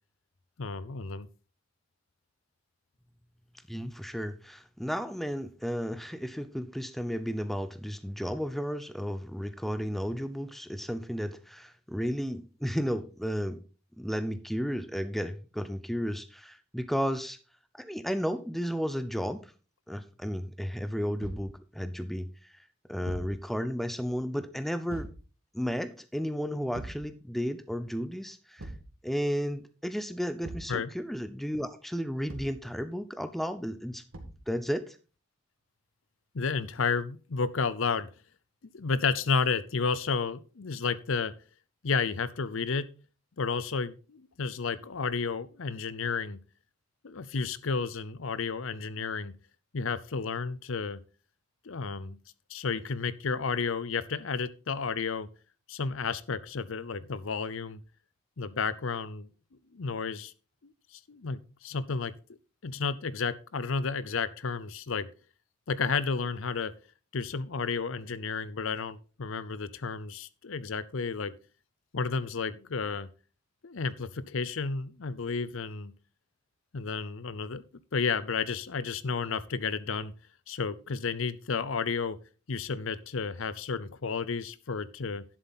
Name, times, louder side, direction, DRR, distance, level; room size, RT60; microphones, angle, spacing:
voice 1, 0.6-1.3 30.7-30.9 36.3-38.1 38.7-41.3 41.8-42.9 43.4-46.4 47.0-49.3 49.7-51.0 51.6-52.2 52.5-55.3 55.7-57.8 58.4-59.3 59.7-60.3 60.6-62.1 62.6-65.1 65.7-66.7 67.1-71.3 71.9-73.1 73.6-75.9 76.7-77.6 77.9-80.1 80.5-82.2 82.5-85.2, left 5 dB, 75° left, 0.7 m, -32 dB
voice 2, 3.7-13.6 14.0-17.4 17.7-19.5 19.9-22.6 22.9-25.1 25.5-28.7 29.0-34.0 34.5-35.0, equal, ahead, 0.6 m, -33 dB
Thump thud, 21.2-21.5 23.0-23.4 24.9-25.2 26.7-27.1 28.6-28.9 30.4-30.8 32.3-32.6 34.1-34.5, right 1 dB, 80° right, 2.0 m, -41 dB
11.0 x 7.6 x 4.1 m
head